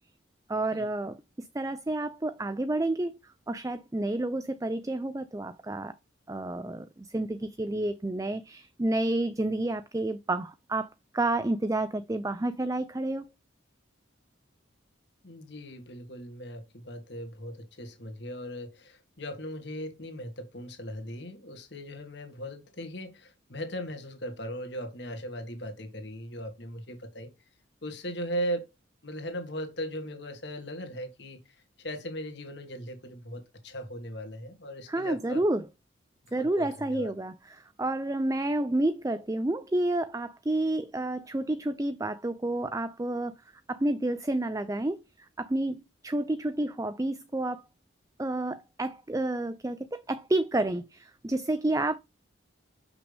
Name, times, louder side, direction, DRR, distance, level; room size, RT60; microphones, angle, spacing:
voice 1, 0.5-3.2 3.5-5.9 6.3-13.3 34.9-35.7 36.3-43.3 43.7-45.0 45.4-47.6 48.2-52.0, right 2 dB, 15° right, 0.4 m, -30 dB
voice 2, 15.2-27.3 27.8-28.7 29.0-31.4 31.8-35.4 36.3-37.1, equal, 60° left, 1.8 m, -38 dB
6.6 x 5.9 x 3.4 m
head